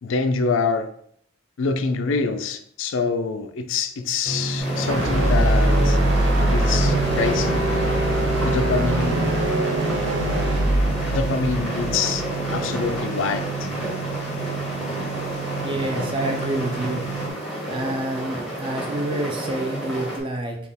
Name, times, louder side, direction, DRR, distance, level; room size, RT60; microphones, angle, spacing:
voice 1, 0.0-0.9 1.6-6.0 6.4-7.9 8.4-9.5 11.1-12.2 12.5-13.7, left 4 dB, 80° left, 8 dB, 0.4 m, -25 dB
sound 1, 4.2-17.3, right 4 dB, 35° left, 0.6 m, -30 dB
sound 2, 4.6-20.2, right 1 dB, ahead, 1.1 m, -30 dB
sound 3, 4.8-13.0, right 1 dB, 65° right, 0.7 m, -22 dB
voice 2, 15.6-17.4 17.7-20.6, right 1 dB, 25° right, 2 dB, 0.5 m, -28 dB
4.1 x 2.3 x 3.5 m, 0.65 s
head